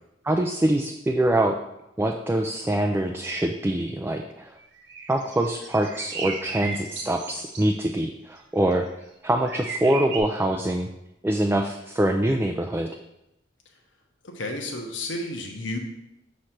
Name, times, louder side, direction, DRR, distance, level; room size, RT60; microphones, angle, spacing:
voice 1, 0.2-1.6 2.0-4.6 5.1-8.9 9.2-10.9 11.2-12.9, right 1 dB, 10° right, 4 dB, 0.3 m, -24 dB
sound 1, 4.8-7.6 8.6-8.9 9.5-10.2, right 4 dB, 65° right, 0.9 m, -35 dB
voice 2, 14.3-15.8, left 2 dB, 75° left, 2 dB, 1.0 m, -31 dB
6.4 x 3.2 x 5.7 m, 0.87 s
head